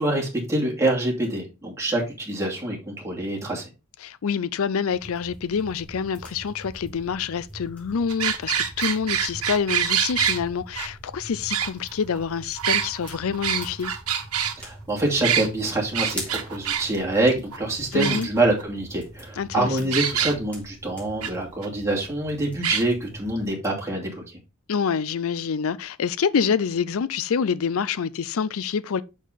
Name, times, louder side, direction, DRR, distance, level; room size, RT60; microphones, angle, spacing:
voice 1, 0.0-3.7 14.6-24.4, right 1 dB, 15° right, 2.5 m, -25 dB
voice 2, 4.0-13.9 17.9-18.3 19.4-19.8 24.7-29.0, left 6 dB, 70° left, 0.5 m, -26 dB
sound 1, 4.9-23.5, right 1 dB, 5° left, 3.5 m, -43 dB
sound 2, 8.1-10.4 10.8-10.9 11.5-12.2 12.6-14.5 15.2-15.5 15.9-16.8 17.2-17.3 17.5-17.6 18.0-18.6 19.9-20.3 21.2-21.3 21.6-21.7 22.6-22.8, right 9 dB, 90° right, 1.4 m, -25 dB
6.4 x 6.2 x 4.0 m
head